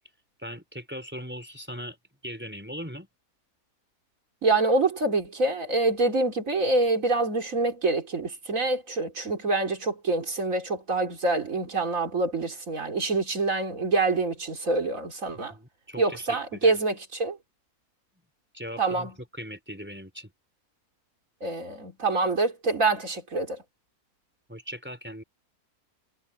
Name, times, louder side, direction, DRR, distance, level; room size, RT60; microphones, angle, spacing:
voice 1, 0.4-2.0 2.2-3.1 15.5-16.8 18.5-20.3 24.5-25.2, equal, 5° right, 4.5 m, -39 dB
voice 2, 4.4-15.5 16.0-17.4 18.8-19.1 21.4-23.6, right 3 dB, 55° right, 3.8 m, -26 dB
omnidirectional pair, 1.6 m